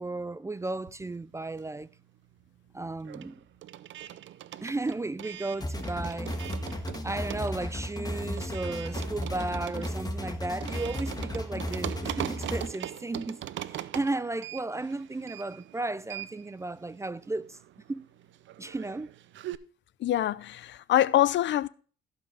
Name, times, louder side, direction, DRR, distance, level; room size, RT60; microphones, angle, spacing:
voice 1, 0.0-1.9 2.7-3.4 4.6-13.4 13.7-17.6 17.9-18.1 18.6-19.1, right 2 dB, 15° right, 0.4 m, -34 dB
sound 1, 0.7-2.0 2.2-19.6, right 13 dB, 70° right, 0.6 m, -41 dB
sound 2, 5.6-12.7, left 1 dB, 20° left, 1.5 m, -35 dB
voice 2, 20.0-21.7, left 13 dB, 65° left, 0.5 m, -25 dB
16.0 x 5.6 x 3.4 m
cardioid pair, 90°, 20 cm